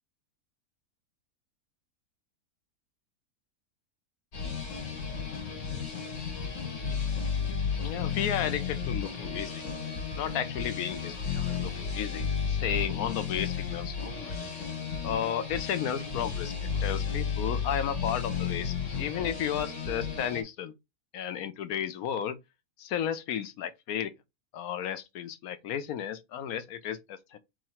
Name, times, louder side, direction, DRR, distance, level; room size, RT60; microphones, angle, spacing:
sound 1, 4.3-20.4, left 6 dB, 55° left, 1.7 m, -33 dB
voice 1, 7.8-9.6 10.2-14.4 15.0-20.7 21.1-22.4 22.8-24.1 24.5-27.4, left 9 dB, 70° left, 1.1 m, -33 dB
3.7 x 3.1 x 4.2 m
omnidirectional pair, 1.6 m